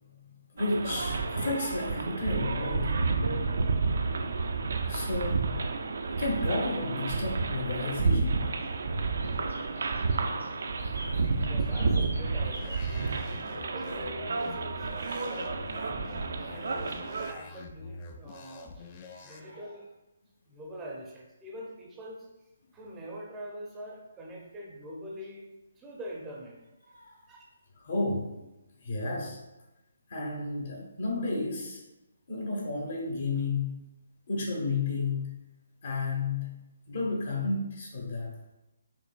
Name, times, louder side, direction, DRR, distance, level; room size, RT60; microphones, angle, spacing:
voice 1, 0.5-2.9 4.9-5.5 6.2-8.4 15.5-15.7 19.0-19.6 26.9-27.2 27.8-28.5 28.8-29.4 30.1-31.8 32.3-33.8 34.3-35.4 35.8-36.5 36.9-38.3, left 3 dB, 55° left, -1 dB, 1.2 m, -32 dB
sound 1, 0.6-17.3, right 4 dB, 60° right, 0.4 m, -30 dB
sound 2, 6.4-6.5 6.6-8.7 9.0-13.6 13.8-14.0, right 1 dB, 90° right, 0.9 m, -48 dB
voice 2, 11.0-12.9 13.4-15.7 16.5-18.8 19.2-19.9 20.5-22.3 22.7-26.6 27.3-27.4, right 1 dB, 15° right, -2 dB, 0.6 m, -44 dB
sound 3, 12.5-19.4, left 4 dB, 30° left, 0.4 m, -46 dB
5.0 x 3.0 x 2.4 m, 0.96 s
figure-of-eight pair, 145°, 0 cm